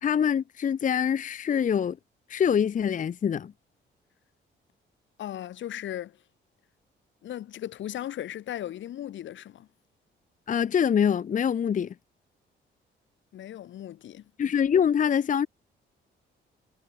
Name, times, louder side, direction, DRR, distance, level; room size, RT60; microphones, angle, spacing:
voice 1, 0.0-2.0 2.3-3.5 10.5-11.9 14.4-15.5, left 8 dB, 40° left, 0.7 m, -24 dB
voice 2, 5.2-6.2 7.2-9.7 13.3-14.3, left 12 dB, 70° left, 2.0 m, -37 dB
cardioid pair, 90°, 20 cm